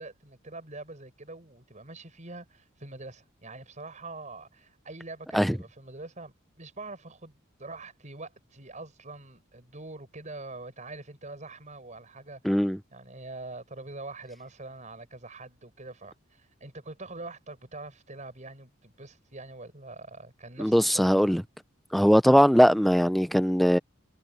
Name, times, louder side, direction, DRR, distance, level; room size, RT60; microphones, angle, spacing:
voice 1, 0.0-21.1, right 2 dB, 40° right, 5.9 m, -44 dB
voice 2, 12.4-12.8 20.6-21.4 21.9-23.8, equal, ahead, 0.5 m, -20 dB
head